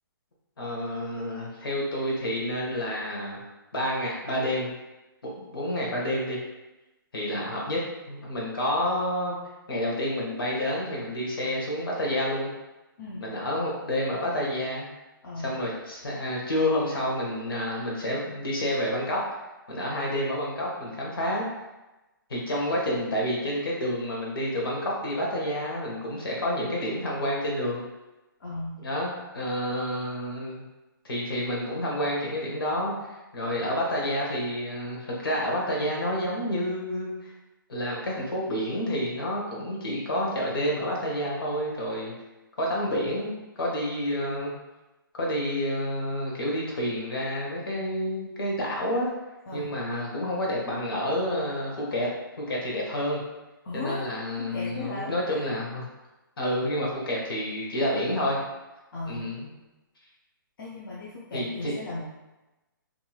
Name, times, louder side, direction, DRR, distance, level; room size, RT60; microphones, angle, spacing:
voice 1, 0.6-3.5 3.7-4.7 5.2-6.4 7.1-9.4 9.7-12.5 13.2-14.9 15.4-19.2 19.7-21.5 22.3-27.8 28.8-30.6 31.0-37.3 37.7-42.1 42.6-44.5 45.1-49.1 49.5-52.1 52.4-53.2 53.7-55.9 56.4-58.4 59.1-59.5 61.3-61.7, equal, 85° left, -3 dB, 1.1 m, -29 dB
voice 2, 15.2-15.5 28.4-28.8 49.5-49.7 53.6-54.1 54.4-55.4 58.9-59.4 60.6-62.0, left 2 dB, 65° left, -6 dB, 0.6 m, -36 dB
2.9 x 2.6 x 2.4 m, 1.0 s
hypercardioid pair, 155°, 12 cm